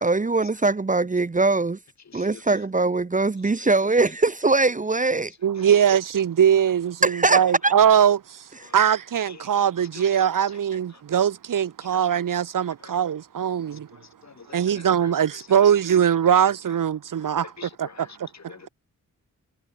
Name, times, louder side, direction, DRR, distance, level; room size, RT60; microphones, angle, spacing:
voice 1, 0.0-1.8 2.1-5.3 7.0-7.7, right 3 dB, 25° right, 1.1 m, -21 dB
voice 2, 2.1-2.4 3.6-3.7 5.6-5.7 8.6-8.8 9.3-9.6 9.9-10.1 11.9-12.0 12.8-12.9 13.9-15.5 17.2-18.7, left 6 dB, 60° left, 4.0 m, -46 dB
voice 3, 5.4-8.4 8.7-13.9 14.5-18.5, right 9 dB, 80° right, 1.6 m, -21 dB
wide cardioid pair, 90°, 32 cm